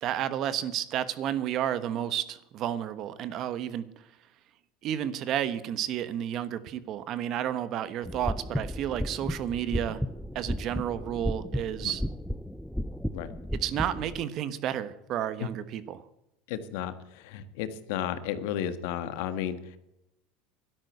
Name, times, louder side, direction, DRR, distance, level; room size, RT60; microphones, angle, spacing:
voice 1, 0.0-3.8 4.8-10.0 10.3-12.0 13.6-16.0, right 10 dB, 45° right, 14 dB, 1.2 m, -31 dB
sound 1, 8.0-14.2, equal, ahead, 0.5 m, -34 dB
voice 2, 16.5-19.8, left 10 dB, 75° left, 11 dB, 1.5 m, -33 dB
12.5 x 10.5 x 8.0 m, 0.87 s
supercardioid pair, 125°, 0 cm